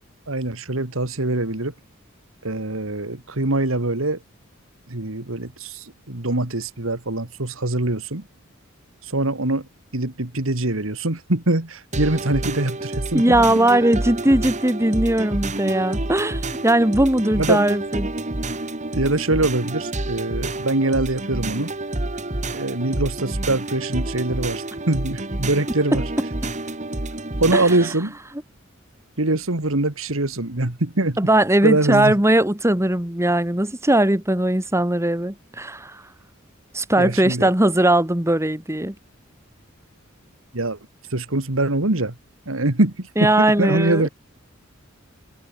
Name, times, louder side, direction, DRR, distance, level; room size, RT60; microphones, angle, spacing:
voice 1, 0.3-1.7 2.4-4.2 4.9-8.2 9.1-13.4 17.4-17.6 18.9-21.7 22.5-26.0 27.4-28.1 29.2-31.2 31.6-32.1 37.0-37.5 40.5-40.8 41.1-42.1 42.5-44.1, right 2 dB, 80° right, 2.4 m, -23 dB
sound 1, 11.9-27.9, right 2 dB, 35° right, 2.1 m, -29 dB
voice 2, 13.1-18.1 27.5-27.6 31.2-36.0 36.7-38.9 43.2-44.1, right 1 dB, 15° right, 1.7 m, -19 dB
open air
head